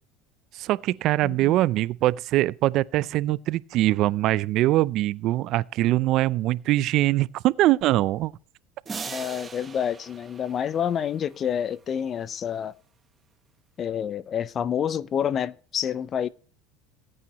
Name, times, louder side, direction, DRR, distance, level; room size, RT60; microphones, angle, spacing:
voice 1, 0.5-8.3, right 16 dB, 55° right, 0.4 m, -23 dB
voice 2, 1.2-1.5 9.1-12.7 13.8-16.3, left 8 dB, 35° left, 0.6 m, -28 dB
sound 1, 8.9-11.6, right 5 dB, 25° right, 0.9 m, -40 dB
18.5 x 8.8 x 3.0 m
supercardioid pair, 125°, 0 cm